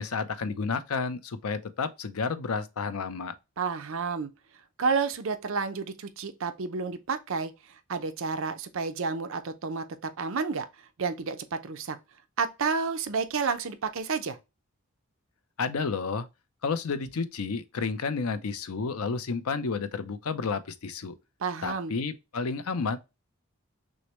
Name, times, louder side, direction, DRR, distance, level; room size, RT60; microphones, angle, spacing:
voice 1, 0.0-3.3 15.6-16.3 16.6-21.1 21.6-23.0, left 4 dB, 75° left, 0.5 m, -31 dB
voice 2, 3.6-4.3 4.8-10.7 11.0-12.0 12.4-14.4 21.4-21.9, right 5 dB, 60° right, 0.6 m, -30 dB
6.2 x 2.1 x 2.9 m
head